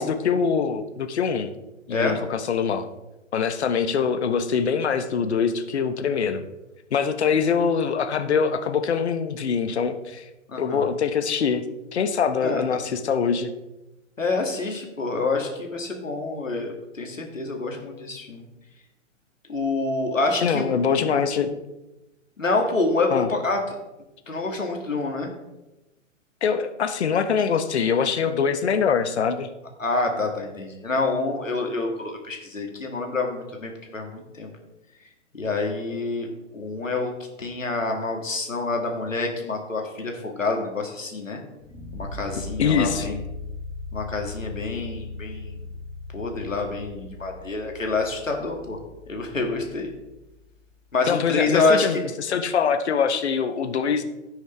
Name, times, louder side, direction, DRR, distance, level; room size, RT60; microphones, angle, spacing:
voice 1, 0.0-1.5 1.9-2.9 3.3-6.4 6.9-10.2 10.6-11.6 11.9-13.5 20.4-21.6 23.1-23.3 26.4-29.5 42.6-43.1 51.1-54.0, left 6 dB, 60° left, 8 dB, 1.1 m, -23 dB
voice 2, 10.5-10.9 12.4-12.8 14.2-18.4 19.5-21.2 22.4-23.6 24.3-25.3 29.8-34.5 35.3-36.3 36.5-37.1 37.4-41.4 41.9-43.2 43.9-45.5 46.1-48.8 49.1-49.9 50.9-51.9, left 3 dB, 80° left, 2 dB, 2.4 m, -27 dB
sound 1, 41.6-50.6, left 3 dB, 10° left, 2.0 m, -38 dB
16.0 x 6.3 x 3.4 m, 1.0 s
figure-of-eight pair, 120°, 38 cm